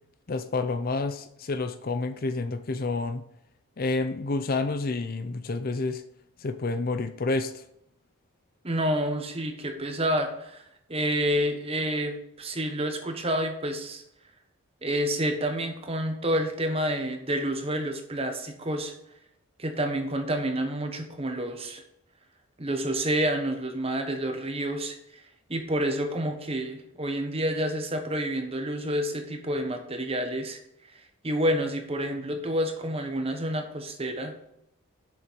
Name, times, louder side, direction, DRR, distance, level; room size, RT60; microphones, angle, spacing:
voice 1, 0.3-3.2 3.8-6.0 6.4-7.6, left 3 dB, 40° left, 10 dB, 0.5 m, -29 dB
voice 2, 8.6-10.6 10.9-14.0 14.8-18.9 19.6-21.8 22.6-25.0 25.5-30.6 31.2-34.3, right 1 dB, 25° right, 5 dB, 1.1 m, -29 dB
7.2 x 6.8 x 5.1 m, 0.78 s
head